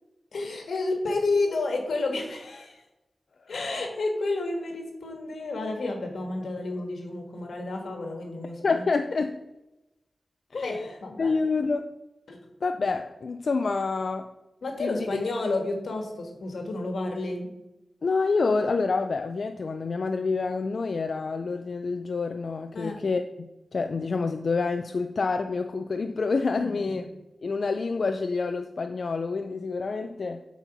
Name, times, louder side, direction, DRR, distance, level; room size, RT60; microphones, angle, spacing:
voice 1, 0.3-2.8 3.5-8.8 10.6-11.3 12.3-12.4 14.6-17.5 22.7-23.0 26.5-26.8, left 2 dB, 90° left, 3 dB, 1.5 m, -30 dB
voice 2, 8.6-9.4 10.5-11.9 12.6-14.3 14.8-14.9 18.0-27.1 27.4-30.5, left 4 dB, 65° left, 6 dB, 0.4 m, -28 dB
7.8 x 4.2 x 6.0 m, 0.98 s
wide cardioid pair, 85°, 0 cm